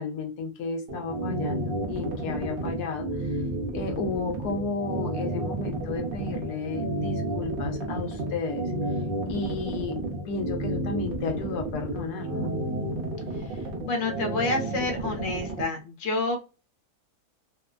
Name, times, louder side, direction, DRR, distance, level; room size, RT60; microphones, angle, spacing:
voice 1, 0.0-3.4 3.7-8.7 9.3-10.0 10.3-12.5, left 4 dB, 85° left, 1.1 m, -33 dB
sound 1, 0.9-15.6, right 2 dB, 55° right, 0.6 m, -31 dB
voice 2, 13.8-16.4, left 2 dB, 60° left, 1.1 m, -28 dB
3.0 x 2.1 x 2.3 m
omnidirectional pair, 1.6 m